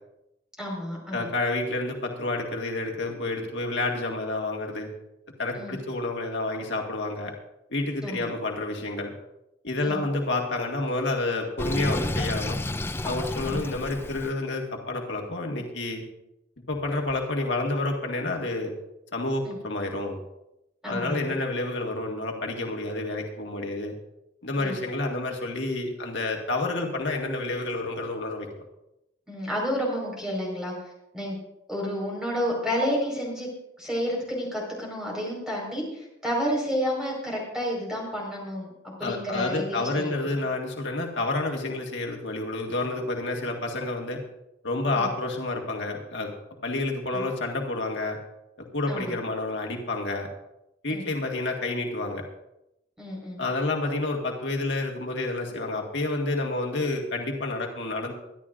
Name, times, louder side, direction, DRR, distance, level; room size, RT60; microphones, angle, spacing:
voice 1, 0.6-1.3 5.6-5.8 8.0-8.3 9.8-10.0 13.4-13.6 19.4-19.6 20.8-21.3 24.6-24.8 29.3-30.7 31.1-31.4 31.7-33.5 33.8-38.7 39.0-40.1 44.9-45.1 47.1-47.2 48.9-49.2 50.9-51.1 53.0-53.4, equal, 5° right, -3 dB, 4.7 m, -30 dB
voice 2, 1.1-4.9 5.4-7.3 7.7-9.1 9.6-12.6 13.0-16.0 16.7-18.7 19.1-20.2 20.9-23.9 24.4-28.5 39.0-44.2 44.6-46.3 46.6-48.2 48.7-50.3 50.8-52.2 53.4-58.1, left 2 dB, 80° left, 1 dB, 1.7 m, -29 dB
Sink (filling or washing), 11.6-14.3, left 1 dB, 15° left, 0.4 m, -30 dB
23.5 x 11.0 x 2.6 m, 0.87 s
head